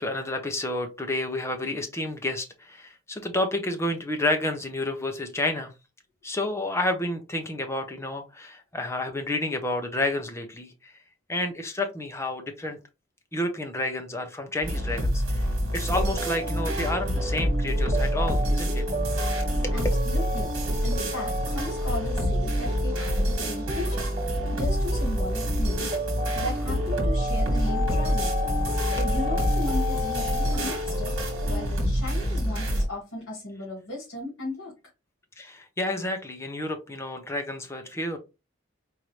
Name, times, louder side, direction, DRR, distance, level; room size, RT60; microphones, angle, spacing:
voice 1, 0.0-5.7 6.2-10.9 11.3-12.8 13.3-15.4 15.7-18.8 19.6-19.7 29.0-29.1 35.4-38.2, left 1 dB, 15° left, 0.7 m, -30 dB
sound 1, 14.6-32.8, equal, 65° right, 1.6 m, -27 dB
sound 2, 15.9-31.7, right 1 dB, 35° right, 0.5 m, -34 dB
voice 2, 19.7-20.5 20.8-24.1 24.5-25.9 26.3-28.4 28.9-31.1 31.5-34.7, left 2 dB, 65° left, 2.3 m, -36 dB
sound 3, 27.6-31.7 32.0-32.1, left 10 dB, 80° left, 1.0 m, -34 dB
4.6 x 2.6 x 3.1 m
head